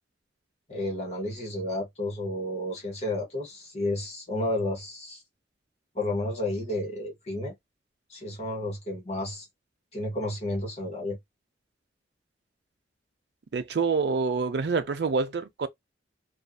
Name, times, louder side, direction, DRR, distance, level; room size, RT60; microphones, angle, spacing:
voice 1, 0.7-5.2 5.9-7.5 8.1-9.4 9.9-11.2, left 1 dB, 35° left, 1.3 m, -31 dB
voice 2, 13.5-15.7, right 4 dB, 65° right, 0.5 m, -26 dB
2.6 x 2.4 x 2.2 m
head